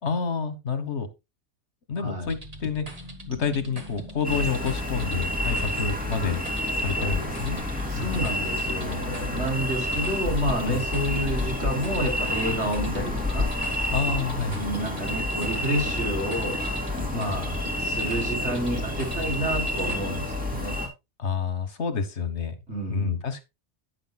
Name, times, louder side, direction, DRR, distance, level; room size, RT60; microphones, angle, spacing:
voice 1, 0.0-1.1 1.9-2.9 3.3-6.4 6.8-7.6 7.9-8.3 10.7-10.8 13.9-14.6 17.1-17.4 21.2-22.5 22.9-23.4, left 5 dB, 65° left, 1.6 m, -28 dB
voice 2, 2.0-2.3 7.9-13.5 14.5-16.6 17.1-20.7 22.7-23.2, right 1 dB, 65° right, 3.7 m, -30 dB
sound 1, 2.2-20.0, equal, 30° right, 1.9 m, -41 dB
sound 2, 4.2-20.9, left 1 dB, 5° right, 2.7 m, -29 dB
10.0 x 9.9 x 2.3 m
omnidirectional pair, 1.2 m